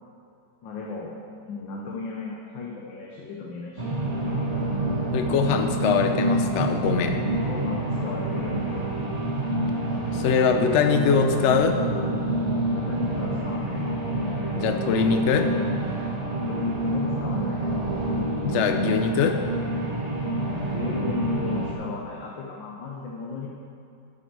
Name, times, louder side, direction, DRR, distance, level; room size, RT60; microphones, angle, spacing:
voice 1, 0.6-1.1 1.4-3.9 7.5-8.6 12.7-13.8 16.5-17.7 20.7-23.5, left 4 dB, 85° left, -2 dB, 1.7 m, -35 dB
sound 1, 3.8-21.7, right 1 dB, 25° right, 1.0 m, -27 dB
voice 2, 5.1-7.2 10.1-11.8 14.5-15.5 18.4-19.4, left 6 dB, 65° left, 6 dB, 0.7 m, -22 dB
10.5 x 8.1 x 4.7 m, 2.6 s
omnidirectional pair, 2.0 m